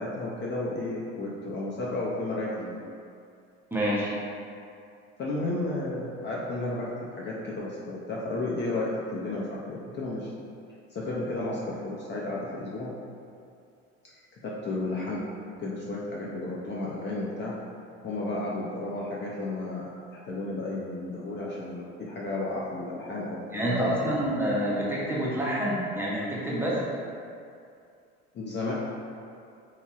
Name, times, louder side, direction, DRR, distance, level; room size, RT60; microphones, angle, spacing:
voice 1, 0.0-2.7 5.2-10.3 10.9-12.9 14.4-15.2 15.6-17.5 18.0-24.2 28.3-28.7, left 2 dB, 35° left, -5 dB, 0.4 m, -33 dB
voice 2, 3.7-4.1 23.5-26.7, right 1 dB, 5° right, -7 dB, 0.6 m, -27 dB
3.0 x 2.6 x 2.3 m, 2.4 s
supercardioid pair, 85°, 34 cm